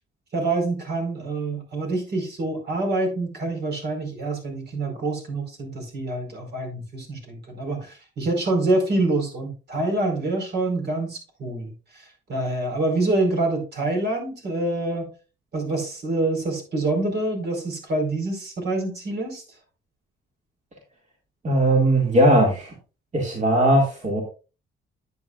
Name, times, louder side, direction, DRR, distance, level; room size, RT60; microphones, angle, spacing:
voice 1, 0.3-15.1 15.5-19.4, right 2 dB, 55° right, 3 dB, 4.8 m, -26 dB
voice 2, 21.4-22.7 23.1-24.2, right 1 dB, 35° right, -1 dB, 2.3 m, -19 dB
10.5 x 8.5 x 2.5 m, 0.33 s
cardioid pair, 90°, 20 cm